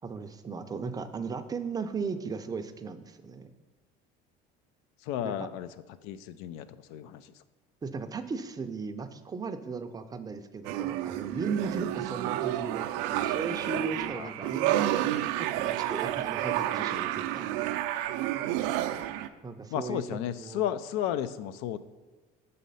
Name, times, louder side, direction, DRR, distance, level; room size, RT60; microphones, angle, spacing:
voice 1, 0.0-3.5 5.2-5.5 7.8-14.9 15.4-17.6 19.4-20.6, right 4 dB, 20° right, 8 dB, 0.4 m, -36 dB
voice 2, 5.0-5.7 6.0-7.3 14.1-15.2 19.7-21.8, left 11 dB, 80° left, 14 dB, 0.4 m, -34 dB
sound 1, 10.6-19.3, right 13 dB, 85° right, 0.4 m, -30 dB
6.4 x 4.2 x 5.4 m, 1.3 s
cardioid pair, 120°, 21 cm